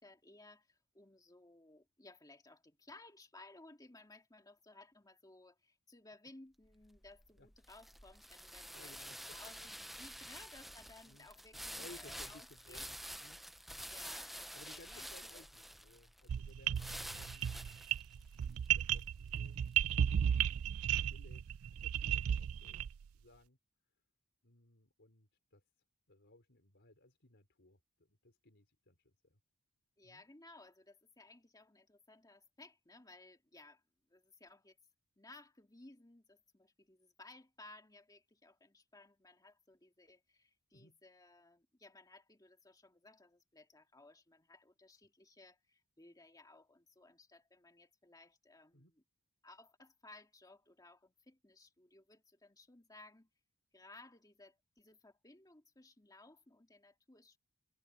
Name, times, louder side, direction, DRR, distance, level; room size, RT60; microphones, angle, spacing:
voice 1, 0.0-12.9 13.9-15.5 30.0-33.8 34.1-34.8 35.2-49.0 49.4-53.3 53.7-57.4, left 2 dB, 15° left, 2.1 m, -59 dB
sound 1, 6.6-19.9, equal, ahead, 0.7 m, -49 dB
voice 2, 8.7-9.7 11.0-11.3 11.7-13.4 14.5-17.6 18.4-19.6 20.1-20.4 21.0-21.4 21.8-22.8 23.1-23.6 24.4-25.6 26.1-29.4 30.0-30.3 40.7-41.0 48.7-48.9, left 2 dB, 55° left, 4.7 m, -61 dB
sound 2, 16.3-23.0, right 9 dB, 65° right, 0.4 m, -34 dB
head